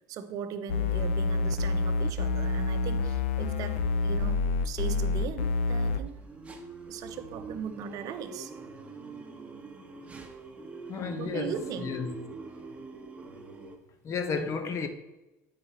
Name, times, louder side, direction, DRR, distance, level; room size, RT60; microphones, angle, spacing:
voice 1, 0.1-3.8 4.0-6.1 6.9-8.5 11.2-12.0, right 7 dB, 55° right, 0.8 m, -38 dB
sound 1, 0.7-6.0, left 3 dB, 90° left, 0.6 m, -27 dB
sound 2, 6.1-13.8, right 3 dB, 15° right, 1.2 m, -44 dB
voice 2, 10.9-12.2 14.0-14.9, left 5 dB, 45° left, 1.0 m, -32 dB
8.4 x 4.9 x 4.3 m
supercardioid pair, 95°, 7 cm